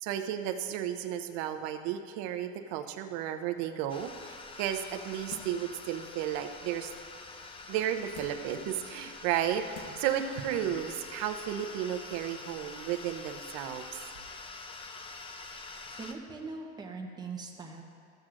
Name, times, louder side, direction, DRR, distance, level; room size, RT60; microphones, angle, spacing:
voice 1, 0.0-6.9 7.7-13.9, right 10 dB, 70° right, 8 dB, 0.7 m, -33 dB
sound 1, 3.9-16.1, left 3 dB, 20° left, 0.5 m, -46 dB
sound 2, 5.3-5.7 6.2-6.3 8.1-8.6 9.3-9.4 9.7-10.2 10.5-10.6, left 5 dB, 55° left, 1.1 m, -49 dB
voice 2, 15.9-17.8, right 4 dB, 15° right, 1 dB, 1.0 m, -41 dB
14.5 x 7.5 x 2.5 m, 2.4 s
cardioid pair, 130°, 29 cm